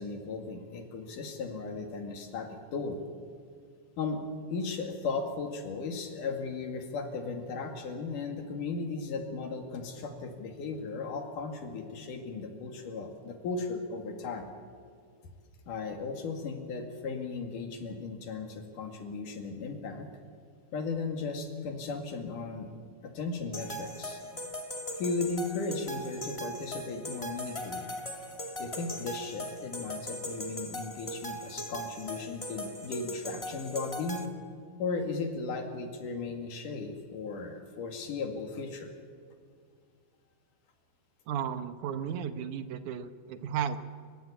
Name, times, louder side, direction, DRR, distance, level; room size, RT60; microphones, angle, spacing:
voice 1, 0.0-3.0 4.0-4.2 4.5-14.5 15.7-20.1 20.7-22.7 23.0-24.2 25.0-27.9 28.6-34.3 34.8-38.9, left 4 dB, 85° left, 4 dB, 3.8 m, -36 dB
sound 1, 23.5-34.2, equal, 15° left, 1.2 m, -39 dB
voice 2, 41.3-43.8, right 8 dB, 75° right, 10 dB, 2.4 m, -34 dB
29.0 x 15.5 x 8.5 m, 2.1 s
omnidirectional pair, 3.6 m